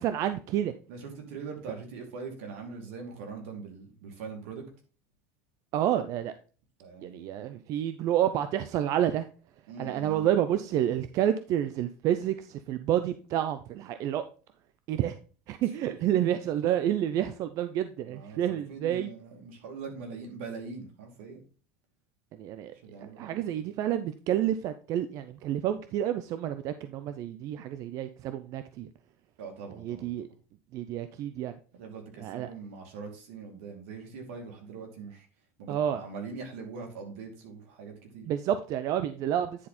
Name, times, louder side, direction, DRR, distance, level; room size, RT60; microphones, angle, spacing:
voice 1, 0.0-0.7 5.7-6.3 7.0-9.3 9.8-14.2 14.9-15.2 15.5-19.1 22.3-28.9 29.8-30.3 30.7-31.5 32.2-32.5 35.7-36.0 38.3-39.7, right 11 dB, 50° right, 10 dB, 0.5 m, -29 dB
voice 2, 0.9-4.6 6.8-7.4 9.7-10.3 15.6-16.2 18.1-21.4 22.7-23.7 29.4-30.3 31.7-35.3 35.6-38.3, right 5 dB, 85° right, 3 dB, 2.7 m, -42 dB
9.9 x 4.1 x 4.2 m, 0.37 s
supercardioid pair, 125°, 7 cm